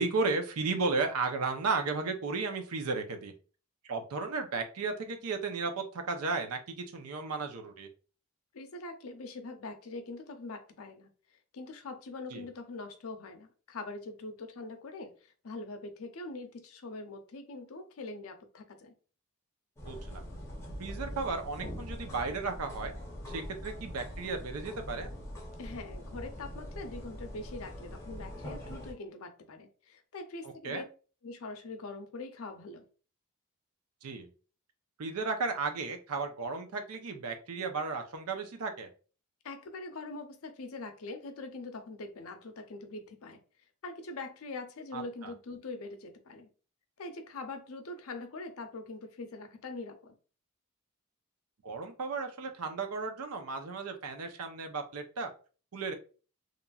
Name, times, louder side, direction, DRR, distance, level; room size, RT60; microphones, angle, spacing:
voice 1, 0.0-3.3 3.8-7.9 12.3-12.5 19.8-20.2 20.8-22.9 23.3-25.1 30.6-30.8 34.0-34.3 35.0-38.9 44.9-45.3 51.6-55.3 55.7-55.9, right 4 dB, 85° right, 5 dB, 0.6 m, -34 dB
voice 2, 8.5-11.1 11.5-18.9 25.6-30.8 31.2-32.8 39.4-43.4 43.8-46.5 47.0-50.1, left 3 dB, 75° left, 7 dB, 0.5 m, -43 dB
sound 1, 19.8-28.9, equal, 10° left, 0.6 m, -43 dB
2.9 x 2.5 x 2.3 m, 0.37 s
head